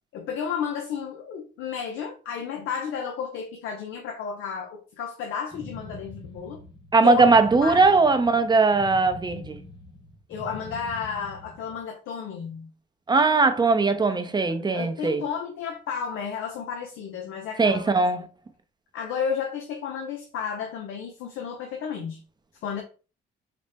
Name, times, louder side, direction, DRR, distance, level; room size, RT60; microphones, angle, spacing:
voice 1, 0.1-6.6 7.0-7.2 7.6-7.8 10.3-12.7 14.6-17.8 18.9-22.2 22.6-22.8, left 7 dB, 85° left, 0.6 m, -32 dB
sound 1, 5.5-11.8, left 2 dB, 25° left, 0.8 m, -43 dB
voice 2, 6.9-9.6 13.1-15.2 17.6-18.3, right 3 dB, 20° right, 0.5 m, -20 dB
4.1 x 2.1 x 3.3 m
cardioid pair, 90°, 20 cm